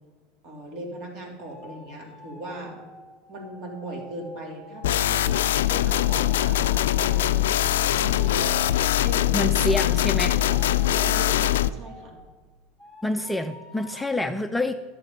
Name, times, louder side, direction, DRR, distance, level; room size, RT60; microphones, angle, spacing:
voice 1, 0.4-2.8 3.3-8.5 9.0-9.5 10.1-10.6 10.9-12.1, right 1 dB, 50° right, 0 dB, 3.1 m, -38 dB
sound 1, 1.4-9.0 9.6-12.3 12.8-14.2, left 2 dB, 15° right, 3.2 m, -48 dB
sound 2, 4.8-11.7, left 13 dB, 85° left, 0.3 m, -22 dB
sound 3, 6.0-11.0, right 1 dB, 80° right, 3.3 m, -46 dB
voice 2, 9.3-10.4 13.0-14.7, left 1 dB, 5° left, 7 dB, 0.5 m, -27 dB
11.5 x 6.7 x 5.6 m, 1.4 s
hypercardioid pair, 105°, 0 cm